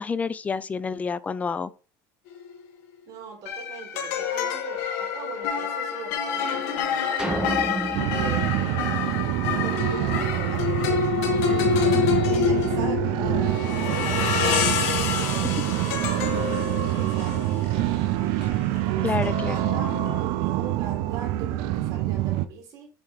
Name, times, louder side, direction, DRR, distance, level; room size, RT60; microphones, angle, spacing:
voice 1, 0.0-1.7 19.0-19.5, left 5 dB, 20° left, 0.4 m, -28 dB
sound 1, 2.3-2.6 3.5-20.2, left 7 dB, 80° left, 1.4 m, -27 dB
voice 2, 3.1-7.3 7.8-11.0 11.3-14.6 15.1-17.8 18.6-22.9, right 5 dB, 50° right, 2.6 m, -41 dB
sound 2, 7.2-9.7, right 2 dB, 10° right, 0.9 m, -32 dB
sound 3, 7.9-22.5, right 14 dB, 70° right, 0.5 m, -26 dB
7.3 x 2.9 x 4.8 m
cardioid pair, 130°, 8 cm